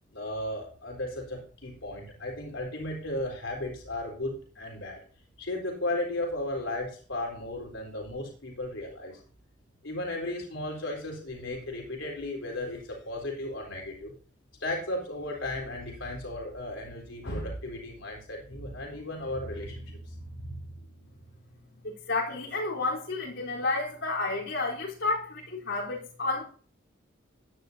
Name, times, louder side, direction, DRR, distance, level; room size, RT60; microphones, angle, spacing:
voice 1, 0.1-5.0 5.4-9.2 9.8-14.1 14.6-20.9, left 1 dB, 90° left, 3.9 m, -35 dB
voice 2, 22.1-26.4, left 3 dB, 70° left, 3.9 m, -30 dB
16.5 x 10.0 x 2.8 m
head